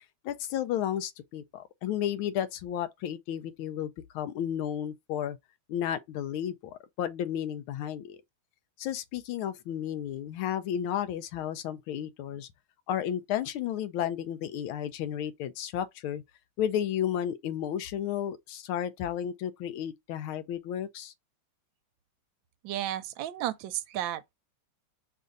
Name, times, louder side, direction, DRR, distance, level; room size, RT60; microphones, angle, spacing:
voice 1, 0.2-5.4 5.7-8.2 8.8-12.5 12.9-16.2 16.6-21.1, left 10 dB, 90° left, 1.5 m, -33 dB
voice 2, 22.6-24.3, right 12 dB, 75° right, 1.3 m, -33 dB
5.2 x 2.6 x 3.9 m
omnidirectional pair, 2.2 m